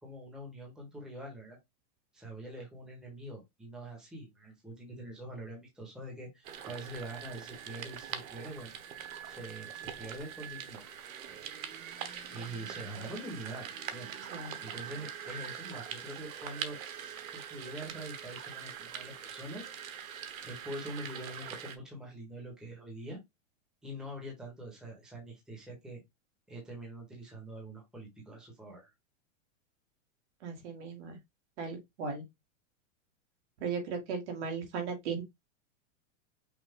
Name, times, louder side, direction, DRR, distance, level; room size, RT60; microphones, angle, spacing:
voice 1, 0.0-1.6 2.1-8.7 9.2-10.8 11.3-11.5 12.3-14.1 14.6-19.7 20.4-23.2 23.8-26.0 26.5-28.9, right 1 dB, ahead, 1.3 m, -44 dB
sound 1, 6.4-21.8, right 8 dB, 90° right, 1.1 m, -43 dB
voice 2, 30.4-31.2 31.6-32.2 33.6-35.2, right 5 dB, 60° right, 2.0 m, -37 dB
5.8 x 2.4 x 3.7 m
supercardioid pair, 160°, 40 cm